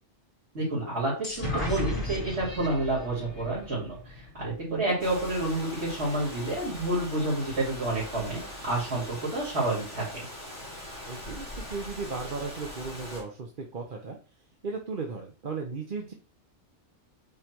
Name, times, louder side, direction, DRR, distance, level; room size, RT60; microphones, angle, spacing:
voice 1, 0.5-10.3, right 2 dB, 65° right, -6 dB, 3.4 m, -29 dB
sound 1, 1.2-4.9, left 2 dB, 55° left, 2.3 m, -35 dB
voice 2, 4.7-5.0 11.1-14.2 14.6-16.1, right 4 dB, 50° right, 2 dB, 1.0 m, -36 dB
Rain, 5.0-13.2, left 1 dB, 80° left, 4.1 m, -41 dB
8.6 x 3.3 x 4.5 m, 0.37 s
omnidirectional pair, 1.2 m